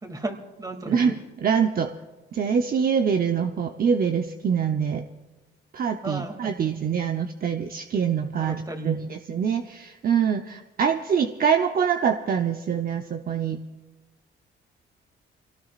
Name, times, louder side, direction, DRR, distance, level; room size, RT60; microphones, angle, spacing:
voice 1, 0.0-1.1 6.0-6.5 8.4-9.1, right 2 dB, 20° right, 5 dB, 2.5 m, -34 dB
voice 2, 0.9-1.9 2.3-5.1 5.7-13.6, right 7 dB, 45° right, 5 dB, 0.7 m, -24 dB
26.0 x 18.0 x 2.5 m, 1.2 s
cardioid pair, 90°, 20 cm